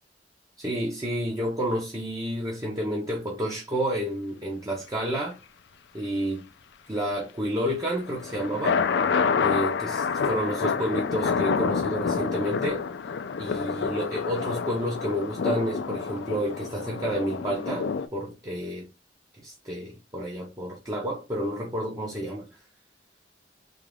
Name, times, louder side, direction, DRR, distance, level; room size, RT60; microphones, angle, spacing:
voice 1, 0.6-5.4 5.9-6.5 6.9-8.8 9.4-12.8 13.4-18.9 19.4-22.5, equal, 20° right, 0.7 m, -30 dB
sound 1, 7.9-18.1, left 5 dB, 65° left, 0.4 m, -28 dB
3.6 x 2.4 x 3.3 m
head